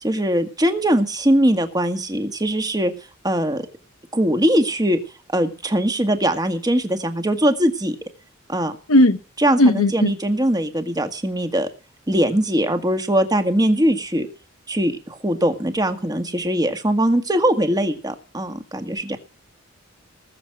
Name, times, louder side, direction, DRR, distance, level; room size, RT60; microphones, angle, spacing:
voice 1, 0.0-2.9 3.2-3.6 4.1-5.0 5.3-8.0 8.5-8.7 9.4-11.7 12.1-14.3 14.7-19.2, right 1 dB, 20° right, 1.9 m, -21 dB
voice 2, 9.6-10.1, left 1 dB, 80° left, 1.3 m, -15 dB
20.0 x 7.4 x 6.2 m
head